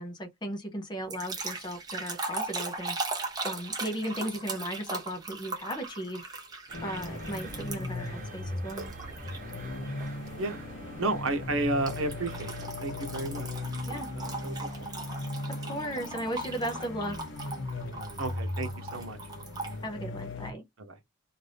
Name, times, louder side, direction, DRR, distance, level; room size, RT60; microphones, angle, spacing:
voice 1, 0.0-3.0 3.4-6.2 6.8-8.9 13.9-14.1 15.5-17.2 19.8-20.6, equal, 20° left, 0.6 m, -36 dB
sound 1, 1.1-8.1 8.7-9.6 10.0-10.3 11.9-19.8, right 3 dB, 20° right, 0.7 m, -39 dB
sound 2, 6.7-20.5, left 2 dB, 60° left, 0.6 m, -38 dB
sound 3, 6.7-12.7, right 2 dB, 40° right, 1.1 m, -45 dB
voice 2, 11.0-13.5 13.8-14.9 18.2-19.2 20.8-21.0, right 2 dB, 75° right, 0.8 m, -32 dB
2.6 x 2.4 x 3.3 m
head